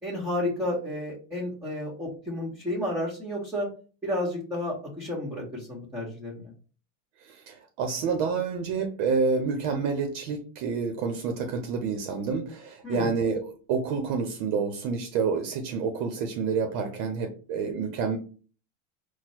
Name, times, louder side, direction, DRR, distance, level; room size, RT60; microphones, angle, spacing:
voice 1, 0.0-3.7 4.0-6.5 12.8-13.1, left 1 dB, 5° right, 1.5 m, -31 dB
voice 2, 7.2-18.2, right 5 dB, 60° right, 0.9 m, -28 dB
4.3 x 2.3 x 4.4 m
supercardioid pair, 110°, 37 cm